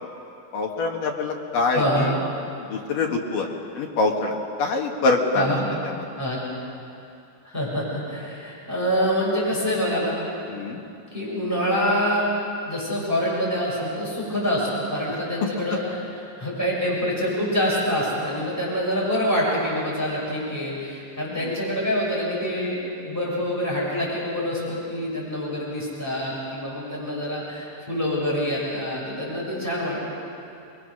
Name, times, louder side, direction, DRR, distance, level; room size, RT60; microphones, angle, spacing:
voice 1, 0.5-2.1 2.6-6.0 10.5-10.8 21.3-21.5, left 3 dB, 60° left, 1 dB, 2.5 m, -25 dB
voice 2, 1.7-2.1 5.3-5.6 6.2-6.4 7.4-10.2 11.1-12.3 12.7-30.0, equal, 5° right, -6 dB, 6.0 m, -26 dB
26.0 x 22.0 x 6.5 m, 2.7 s
omnidirectional pair, 5.6 m